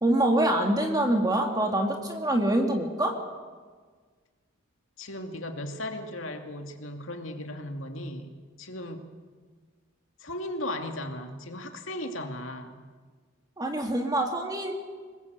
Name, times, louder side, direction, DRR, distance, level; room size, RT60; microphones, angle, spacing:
voice 1, 0.0-3.2 13.6-14.7, right 1 dB, 20° right, 3 dB, 2.3 m, -25 dB
voice 2, 5.0-9.1 10.2-12.8, left 1 dB, 65° left, 4 dB, 2.6 m, -36 dB
26.5 x 20.5 x 8.2 m, 1.5 s
head